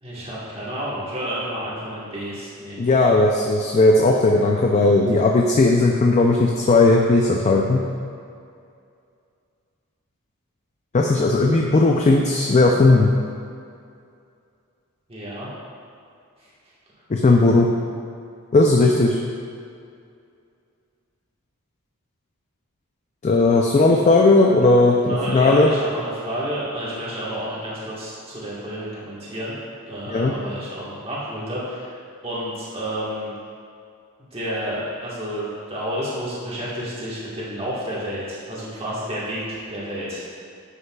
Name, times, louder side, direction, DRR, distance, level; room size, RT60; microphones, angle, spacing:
voice 1, 0.0-2.8 15.1-15.5 25.1-29.5 29.9-32.0 32.2-33.3 34.3-40.4, equal, 25° right, -8 dB, 1.4 m, -30 dB
voice 2, 2.8-7.8 10.9-13.1 17.1-17.7 18.5-19.2 23.2-25.7 30.1-30.3, left 2 dB, 30° left, 0 dB, 0.4 m, -16 dB
9.5 x 5.4 x 2.3 m, 2.4 s
head